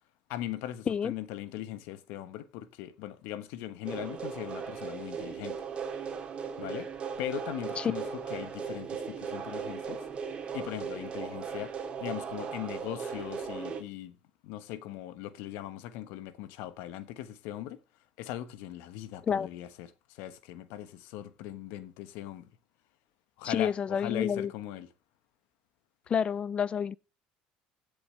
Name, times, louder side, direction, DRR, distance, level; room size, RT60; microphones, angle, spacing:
voice 1, 0.3-5.6 6.6-6.9 7.2-8.0 8.3-10.0 10.5-11.7 12.0-14.2 14.4-17.8 18.2-22.5 23.4-24.9, left 13 dB, 75° left, 1.2 m, -39 dB
sound 1, 3.8-13.8, right 6 dB, 30° right, 3.2 m, -37 dB
voice 2, 23.4-24.5 26.1-27.0, left 7 dB, 30° left, 0.5 m, -29 dB
16.0 x 7.0 x 3.3 m
cardioid pair, 120°, 3 cm